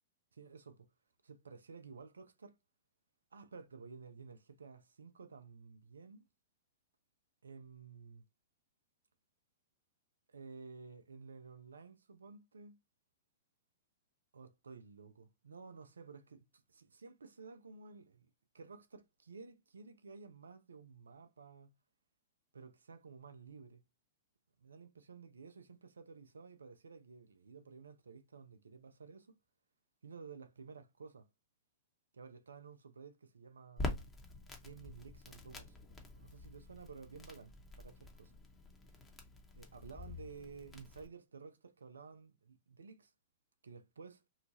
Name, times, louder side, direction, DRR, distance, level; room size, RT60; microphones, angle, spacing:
voice 1, 0.3-0.9 1.2-2.6 3.3-6.2 7.4-8.2 10.3-12.8 14.3-18.3 18.5-21.7 22.5-23.8 24.6-29.4 30.0-31.3 32.1-34.0 34.6-35.8 36.1-38.3 39.5-43.1 43.6-44.2, right 5 dB, 85° right, 0.4 m, -53 dB
Crackle, 33.8-41.1, left 2 dB, 15° left, 0.8 m, -46 dB
2.8 x 2.3 x 2.6 m
hypercardioid pair, 110°, 0 cm